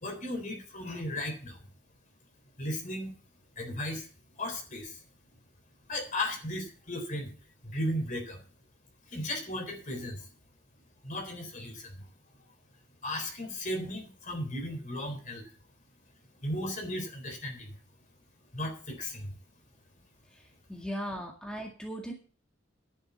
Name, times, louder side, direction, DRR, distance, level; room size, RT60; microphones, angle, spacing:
voice 1, 0.0-1.6 2.6-3.1 3.6-4.1 4.4-5.0 5.9-7.3 7.6-8.4 9.1-10.3 11.0-12.1 13.0-15.4 16.4-17.8 18.5-19.3, left 1 dB, 45° left, 4 dB, 3.8 m, -35 dB
voice 2, 20.3-22.1, equal, 5° left, 0 dB, 2.0 m, -38 dB
10.5 x 7.1 x 8.1 m, 0.37 s
head